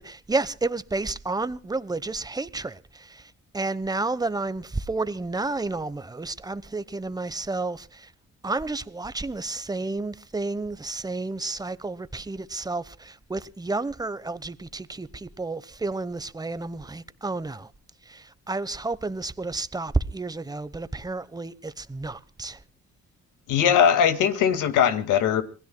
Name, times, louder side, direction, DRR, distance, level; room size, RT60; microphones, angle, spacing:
voice 1, 0.0-8.1 8.4-17.7 18.0-22.6, right 3 dB, 15° right, 1.0 m, -31 dB
voice 2, 23.5-25.4, left 8 dB, 90° left, 2.0 m, -20 dB
27.0 x 20.0 x 2.2 m
cardioid pair, 90°, 30 cm